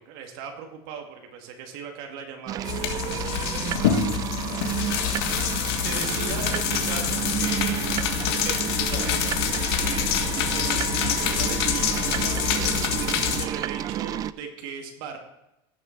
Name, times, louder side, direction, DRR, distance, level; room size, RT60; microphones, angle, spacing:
voice 1, 0.0-4.4 5.8-7.9 8.3-12.8 13.4-15.2, right 6 dB, 65° right, 3 dB, 1.8 m, -39 dB
sound 1, 2.5-14.3, right 11 dB, 30° right, 0.3 m, -30 dB
sound 2, 2.6-13.4, left 10 dB, 70° left, 1.4 m, -26 dB
17.0 x 6.6 x 4.5 m, 0.92 s
supercardioid pair, 145°, 13 cm